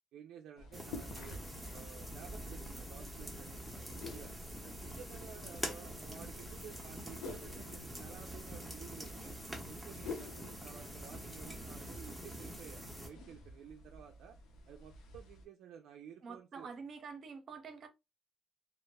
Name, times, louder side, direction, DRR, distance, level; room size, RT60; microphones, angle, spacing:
voice 1, 0.1-1.4 1.7-4.3 4.6-9.3 9.6-14.4 14.7-16.7, right 8 dB, 75° right, 0.3 m, -54 dB
sound 1, 0.6-15.5, left 2 dB, 85° left, 0.6 m, -50 dB
sound 2, 0.7-13.1, equal, ahead, 0.8 m, -46 dB
voice 2, 16.2-17.9, right 5 dB, 50° right, 0.7 m, -47 dB
2.3 x 2.1 x 3.3 m
cardioid pair, 100°, 0 cm